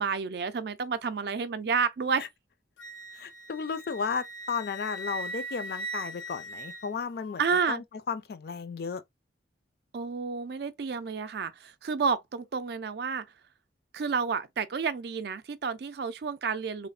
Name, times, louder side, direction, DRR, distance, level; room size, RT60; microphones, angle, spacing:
voice 1, 0.0-2.3 7.4-7.8 9.9-13.3 13.9-16.9, right 5 dB, 60° right, 0.4 m, -30 dB
Wind instrument woodwind instrument, 2.8-7.4, right 1 dB, 85° left, 0.7 m, -40 dB
voice 2, 3.1-7.4 7.7-9.0, left 5 dB, 55° left, 0.4 m, -34 dB
3.1 x 2.1 x 2.3 m
head